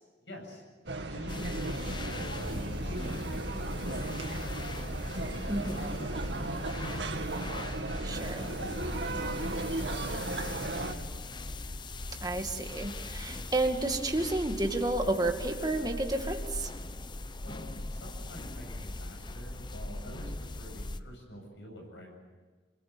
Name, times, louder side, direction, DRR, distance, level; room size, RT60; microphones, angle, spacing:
voice 1, 0.2-0.6 1.1-7.4 8.1-11.3 17.4-22.1, equal, 85° left, 2 dB, 7.9 m, -48 dB
sound 1, 0.9-10.9, right 2 dB, 85° right, 2.3 m, -35 dB
sound 2, 1.3-21.0, left 2 dB, 25° left, 0.8 m, -40 dB
voice 2, 5.5-5.9 8.0-8.5 12.2-16.7, right 2 dB, 20° right, 4 dB, 2.2 m, -31 dB
27.0 x 20.5 x 8.7 m, 1.4 s
head